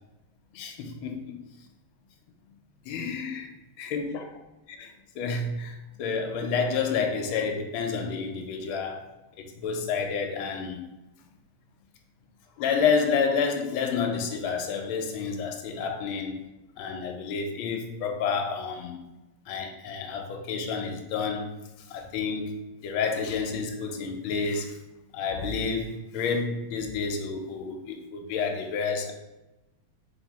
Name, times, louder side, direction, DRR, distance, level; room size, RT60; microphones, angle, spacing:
voice 1, 0.5-1.4 2.8-3.5 3.8-4.2 4.8-4.9 5.2-9.1 9.4-10.8 12.6-16.4 16.8-19.0 19.5-21.5 21.9-22.5 22.8-24.8 25.1-29.1, left 5 dB, 80° left, 1.4 m, -29 dB
3.7 x 2.8 x 4.1 m
omnidirectional pair, 2.3 m